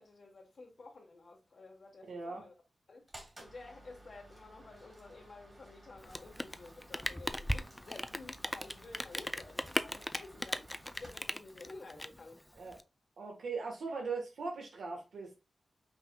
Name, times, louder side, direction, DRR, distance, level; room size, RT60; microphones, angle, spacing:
voice 1, 0.0-2.5 2.9-3.1 3.4-12.4, left 3 dB, 60° left, 1.2 m, -52 dB
voice 2, 2.1-2.4 12.5-12.8 13.2-15.3, right 4 dB, 90° right, 1.3 m, -39 dB
sound 1, 3.1-11.8, right 1 dB, 20° right, 2.0 m, -56 dB
Rain, 6.0-12.8, equal, 5° left, 0.4 m, -38 dB
5.5 x 4.1 x 2.2 m
wide cardioid pair, 95°, 0 cm